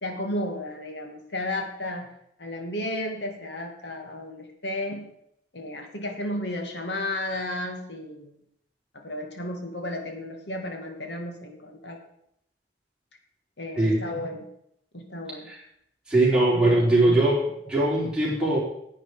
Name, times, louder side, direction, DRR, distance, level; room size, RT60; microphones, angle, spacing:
voice 1, 0.0-2.1 2.4-5.1 5.5-8.3 8.9-12.0 13.6-14.4 14.9-15.5 16.5-17.2 17.7-17.8, left 1 dB, 75° left, 3 dB, 2.1 m, -33 dB
voice 2, 16.1-18.6, right 2 dB, 5° right, -6 dB, 4.2 m, -21 dB
10.5 x 8.7 x 5.0 m, 0.75 s
head